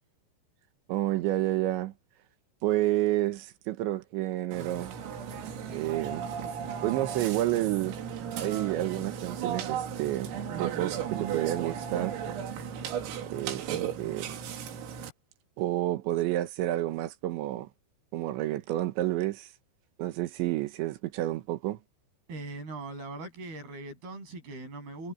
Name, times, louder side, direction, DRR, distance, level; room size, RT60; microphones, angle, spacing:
voice 1, 0.9-1.9 2.6-4.9 5.7-6.3 6.8-8.0 8.4-12.2 13.3-13.6 14.0-14.4 15.6-17.7 18.1-19.5 20.0-21.8, right 15 dB, 75° right, 3.2 m, -30 dB
Burping eructation, 4.5-15.1, right 8 dB, 90° right, 5.3 m, -35 dB
voice 2, 22.3-25.1, right 3 dB, 50° right, 8.8 m, -40 dB
omnidirectional pair, 5.9 m